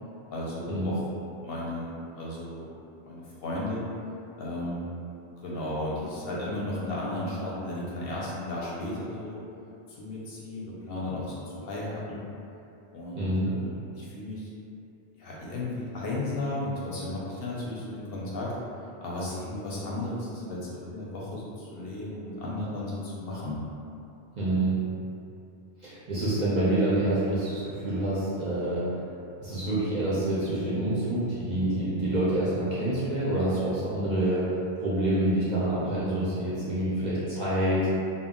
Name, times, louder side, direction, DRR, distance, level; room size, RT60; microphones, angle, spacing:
voice 1, 0.3-1.0 1.4-2.7 3.0-3.9 4.4-4.9 5.4-9.4 9.9-12.3 12.9-14.5 15.2-18.5 19.0-23.6, left 1 dB, 65° left, -6 dB, 0.7 m, -34 dB
voice 2, 13.1-13.5 24.4-24.8 25.8-28.9 29.4-34.5 34.8-37.9, right 1 dB, 55° right, -10 dB, 0.5 m, -27 dB
2.1 x 2.0 x 3.5 m, 2.7 s
omnidirectional pair, 1.2 m